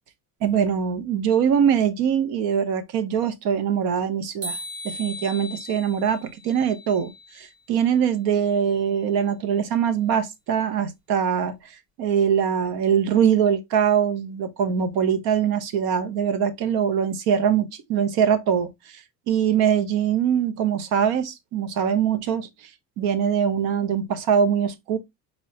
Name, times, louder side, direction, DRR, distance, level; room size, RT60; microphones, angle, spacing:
voice 1, 0.4-4.6 4.8-11.6 12.0-19.0 19.3-22.5 23.0-25.0, right 8 dB, 90° right, 0.8 m, -22 dB
sound 1, 4.4-7.5, left 1 dB, 55° right, 1.2 m, -37 dB
4.3 x 3.1 x 2.8 m
cardioid pair, 165°, 36 cm